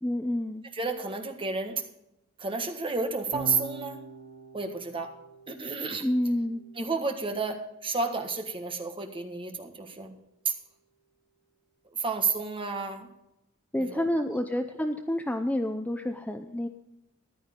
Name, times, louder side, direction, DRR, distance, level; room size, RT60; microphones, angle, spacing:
voice 1, 0.0-0.6 6.0-6.6 13.7-16.7, left 1 dB, 5° left, 7 dB, 0.6 m, -29 dB
voice 2, 0.7-1.8 2.4-4.0 4.5-5.2 5.5-6.1 6.8-10.2 10.4-10.5 12.0-13.1 13.8-14.3, right 4 dB, 25° right, 4 dB, 1.5 m, -31 dB
Electric guitar / Bass guitar, 3.3-9.7, right 4 dB, 65° right, 3.1 m, -45 dB
14.0 x 11.5 x 3.7 m, 0.89 s
head